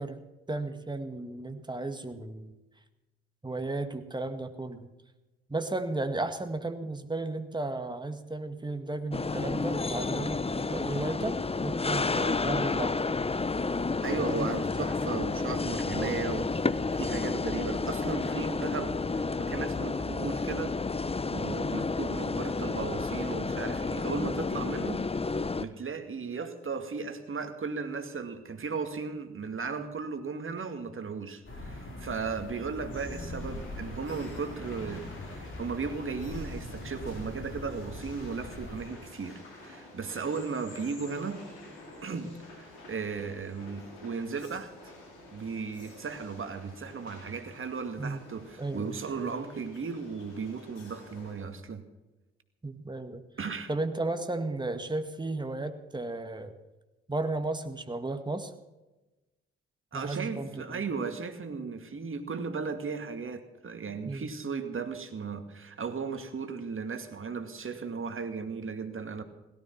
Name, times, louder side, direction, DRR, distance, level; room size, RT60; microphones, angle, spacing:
voice 1, 0.0-2.5 3.4-4.9 5.5-13.1 14.2-14.5 15.9-16.3 48.0-48.2 48.6-49.0 52.6-53.3 53.7-56.6 57.1-58.5 59.9-60.8 64.1-64.4, right 2 dB, 15° right, 8 dB, 2.0 m, -34 dB
sound 1, 9.1-25.7, left 3 dB, 20° left, 0.8 m, -31 dB
voice 2, 14.0-20.8 21.3-25.0 25.6-41.4 42.0-44.9 45.3-51.8 53.4-53.7 59.9-69.2, right 5 dB, 45° right, 8 dB, 2.2 m, -36 dB
sound 2, 31.4-38.8, left 2 dB, 40° left, 5.2 m, -41 dB
sound 3, 32.9-51.3, left 2 dB, 80° left, 4.4 m, -50 dB
17.0 x 13.5 x 6.0 m, 1.1 s
hypercardioid pair, 45°, 30 cm